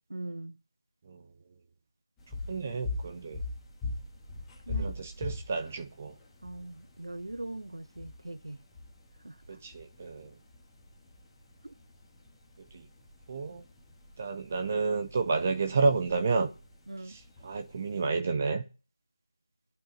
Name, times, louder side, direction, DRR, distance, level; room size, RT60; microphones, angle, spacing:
voice 1, 0.1-0.6 4.7-5.0 6.4-8.6 9.2-9.6 11.6-11.7 16.9-17.2, right 2 dB, 65° right, 0.9 m, -41 dB
sound 1, 2.2-18.1, left 3 dB, 5° left, 1.4 m, -43 dB
voice 2, 2.5-3.4 4.7-6.1 9.5-10.3 12.7-12.8 13.3-13.6 14.2-16.5 17.1-18.6, right 4 dB, 20° right, 0.6 m, -30 dB
8.9 x 8.7 x 7.1 m
figure-of-eight pair, 165°, 3 cm